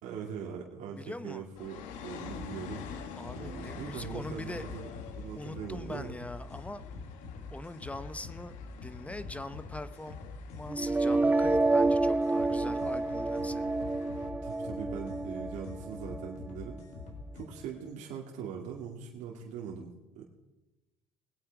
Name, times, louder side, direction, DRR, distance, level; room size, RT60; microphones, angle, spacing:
voice 1, 0.0-2.9 3.3-4.9 5.2-6.2 14.4-16.8 17.3-20.3, right 7 dB, 75° right, -1 dB, 2.4 m, -41 dB
voice 2, 1.0-1.4 3.2-4.7 5.3-6.8 7.5-8.6 8.8-10.2 10.5-13.7, left 2 dB, 10° left, 13 dB, 0.9 m, -42 dB
sound 1, 1.5-14.3, left 7 dB, 80° left, 1.6 m, -48 dB
sound 2, 2.2-17.5, left 3 dB, 65° left, 3.8 m, -45 dB
sound 3, 10.7-16.7, right 2 dB, 10° right, 0.4 m, -29 dB
21.5 x 8.8 x 4.7 m, 1.1 s
cardioid pair, 115°, 13 cm